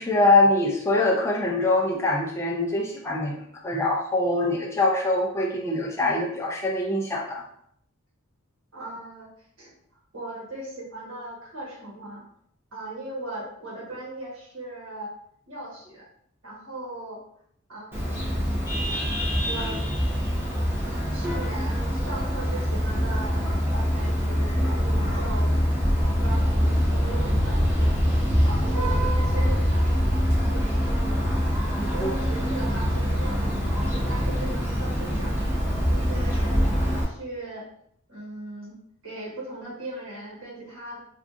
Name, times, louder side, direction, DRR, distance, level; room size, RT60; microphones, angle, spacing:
voice 1, 0.0-7.4 31.8-32.1, left 2 dB, 10° left, -2 dB, 0.4 m, -23 dB
voice 2, 8.7-9.3 9.6-9.7 10.1-12.2 12.7-15.1 15.5-16.1 16.4-17.2 17.7-18.3 19.4-19.8 21.1-23.5 23.7-25.6 26.2-28.0 28.4-31.4 31.9-37.7 38.1-38.8 39.0-41.0, right 2 dB, 70° right, -5 dB, 1.4 m, -38 dB
Vehicle horn car horn honking, 17.9-37.0, equal, 10° right, 0.7 m, -24 dB
4.7 x 2.3 x 2.5 m, 0.69 s
head